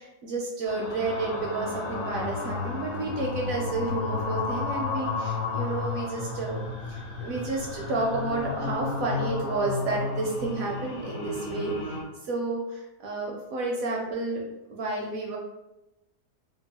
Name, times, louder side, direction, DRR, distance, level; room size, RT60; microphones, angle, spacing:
voice 1, 0.0-11.7 12.2-15.4, right 2 dB, 70° right, -1 dB, 0.9 m, -31 dB
sound 1, 0.7-12.0, left 4 dB, 65° left, 0.7 m, -32 dB
2.9 x 2.4 x 2.7 m, 0.98 s
omnidirectional pair, 1.8 m